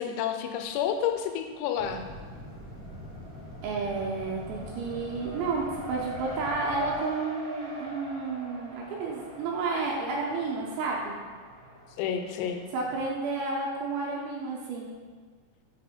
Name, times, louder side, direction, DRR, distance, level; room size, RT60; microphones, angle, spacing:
voice 1, 0.0-2.0 12.0-12.6, left 8 dB, 85° left, 6 dB, 3.3 m, -30 dB
Race car auto racing, 0.6-1.4 1.7-13.0, equal, 45° right, 1.7 m, -43 dB
sound 1, 1.8-7.0, equal, 50° left, 1.8 m, -44 dB
voice 2, 3.6-11.2 12.7-14.9, right 3 dB, 75° right, -3 dB, 2.9 m, -31 dB
6.9 x 5.4 x 4.3 m, 1.5 s
omnidirectional pair, 6.0 m